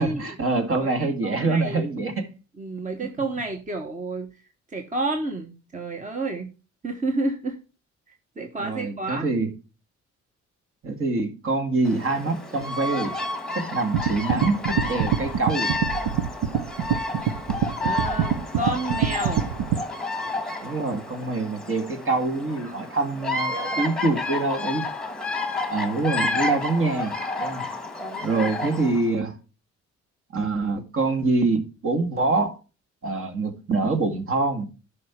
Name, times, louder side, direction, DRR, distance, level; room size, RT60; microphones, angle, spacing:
voice 1, 0.0-2.3 8.6-9.5 10.8-13.2 13.5-15.7 20.6-24.9 25.7-27.7 28.2-29.4 30.3-32.6 33.0-34.7, right 3 dB, 45° right, 2.2 m, -25 dB
voice 2, 0.8-1.9 2.6-4.3 4.7-6.5 6.8-7.6 8.4-9.3 17.8-19.4 28.0-28.6, right 2 dB, 25° right, 1.3 m, -30 dB
Bird vocalization bird call bird song, 11.8-29.1, left 2 dB, ahead, 1.7 m, -30 dB
sound 1, 13.9-19.8, right 8 dB, 90° right, 0.8 m, -25 dB
11.0 x 5.6 x 4.4 m
cardioid pair, 90°, 30 cm